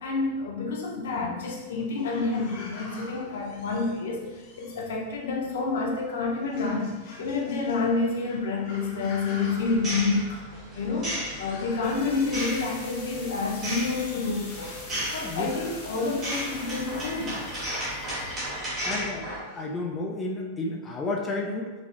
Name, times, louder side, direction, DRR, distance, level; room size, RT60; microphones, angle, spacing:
voice 1, 0.0-4.2 4.6-6.9 7.2-10.4 10.7-14.8 15.1-17.4, left 3 dB, 85° left, -1 dB, 0.7 m, -28 dB
sound 1, 1.4-19.6, left 2 dB, 45° left, 0.8 m, -49 dB
sound 2, 9.6-19.4, equal, 20° right, 1.2 m, -35 dB
sound 3, 11.5-18.7, left 2 dB, 65° left, 1.3 m, -44 dB
voice 2, 15.0-15.5 18.8-21.7, left 2 dB, 10° left, -1 dB, 0.3 m, -32 dB
4.8 x 2.6 x 2.5 m, 1.2 s
supercardioid pair, 170°, 0 cm